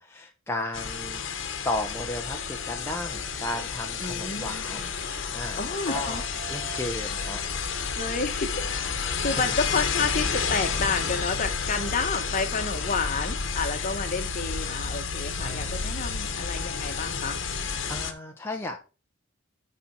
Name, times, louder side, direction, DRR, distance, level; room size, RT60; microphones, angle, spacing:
voice 1, 0.0-4.9 5.3-6.2 6.5-7.4 15.4-15.8 17.9-18.8, left 1 dB, 10° left, 0.7 m, -34 dB
sound 1, 0.7-18.1, left 5 dB, 65° left, 1.1 m, -31 dB
voice 2, 4.0-4.8 5.6-6.2 8.0-8.5 9.2-17.4, left 4 dB, 40° left, 1.1 m, -30 dB
Piano, 5.9-9.0 9.3-9.8, right 5 dB, 50° right, 1.6 m, -44 dB
9.3 x 4.4 x 4.3 m
head